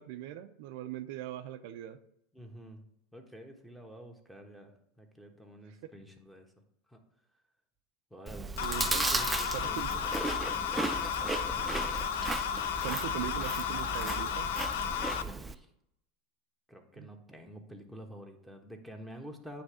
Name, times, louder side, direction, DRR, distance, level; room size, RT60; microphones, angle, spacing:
voice 1, 0.0-2.0 5.7-5.8 8.6-9.0 9.5-9.9 12.8-14.5 17.0-17.1, right 13 dB, 65° right, 9 dB, 0.5 m, -40 dB
voice 2, 2.3-2.8 3.1-6.5 6.9-7.0 8.1-8.5 8.8-10.0 11.4-11.7 15.1-15.7 16.7-19.6, equal, ahead, 3 dB, 1.3 m, -48 dB
Chewing mastication, 8.3-15.6, right 3 dB, 15° right, 0.4 m, -35 dB
sound 1, 8.6-15.2, left 8 dB, 75° left, 0.5 m, -33 dB
9.5 x 3.4 x 4.9 m, 0.78 s
hypercardioid pair, 95°, 0 cm